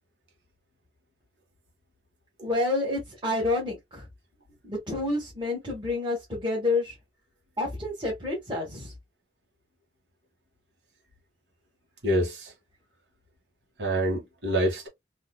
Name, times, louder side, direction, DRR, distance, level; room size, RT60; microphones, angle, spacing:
voice 1, 2.4-4.0 4.6-6.9 7.6-8.9, left 2 dB, 25° right, 1.4 m, -29 dB
voice 2, 12.0-12.5 13.8-14.9, right 1 dB, 80° right, 1.7 m, -26 dB
3.9 x 2.8 x 2.2 m
head